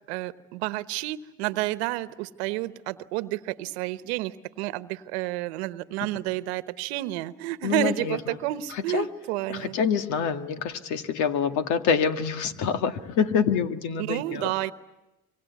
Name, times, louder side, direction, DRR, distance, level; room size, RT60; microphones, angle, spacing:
voice 1, 0.0-9.8 14.0-14.7, right 16 dB, 85° right, 14 dB, 1.1 m, -30 dB
voice 2, 7.6-8.4 8.7-9.1 9.5-14.5, left 6 dB, 65° left, 9 dB, 1.9 m, -26 dB
26.0 x 24.5 x 9.4 m, 1.0 s
supercardioid pair, 95°, 31 cm